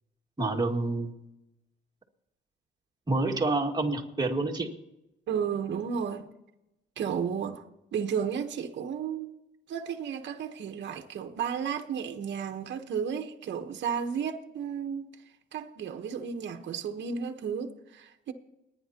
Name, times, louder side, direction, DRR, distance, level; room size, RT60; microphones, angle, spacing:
voice 1, 0.4-1.1 3.1-4.7, right 2 dB, 20° right, 2.0 m, -28 dB
voice 2, 5.3-6.3 7.0-7.6 7.9-9.3 9.7-15.1 15.5-18.3, right 7 dB, 65° right, 1.1 m, -33 dB
30.0 x 10.0 x 2.9 m
cardioid pair, 90°, 20 cm